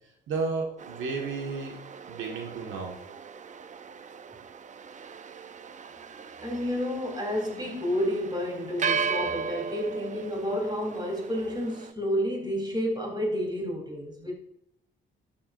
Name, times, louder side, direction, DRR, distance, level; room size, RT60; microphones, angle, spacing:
voice 1, 0.3-1.8 2.1-3.0, right 4 dB, 80° right, 1.8 m, -32 dB
sound 1, 0.8-11.9, right 6 dB, 40° right, 0.6 m, -37 dB
voice 2, 6.4-14.3, equal, 20° right, 4.0 m, -30 dB
12.0 x 8.8 x 2.7 m
cardioid pair, 90°, 20 cm